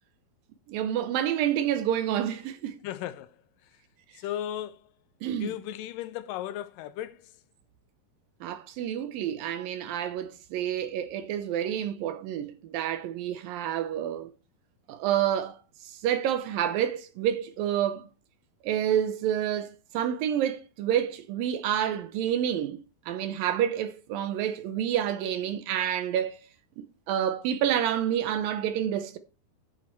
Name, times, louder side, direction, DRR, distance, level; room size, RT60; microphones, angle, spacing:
voice 1, 0.7-2.8 5.2-5.6 8.4-14.3 14.9-15.6 15.8-18.1 18.6-22.8 23.1-26.4 26.8-29.2, right 10 dB, 75° right, 2.3 m, -28 dB
voice 2, 2.8-3.3 4.2-4.8 5.4-7.2, left 12 dB, 80° left, 2.0 m, -35 dB
8.6 x 7.6 x 4.4 m
omnidirectional pair, 4.5 m